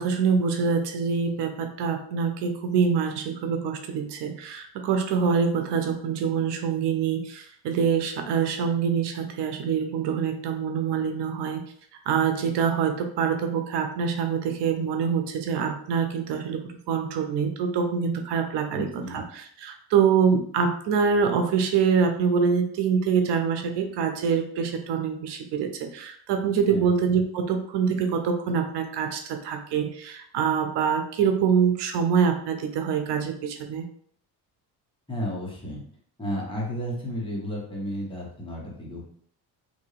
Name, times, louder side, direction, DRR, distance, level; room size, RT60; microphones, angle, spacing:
voice 1, 0.0-11.6 12.1-33.9, right 6 dB, 85° right, 5 dB, 0.7 m, -25 dB
voice 2, 18.7-19.2 26.7-26.9 35.1-35.8 36.2-39.0, equal, 10° left, -4 dB, 1.4 m, -32 dB
3.5 x 2.7 x 3.3 m, 0.62 s
cardioid pair, 105°, 40 cm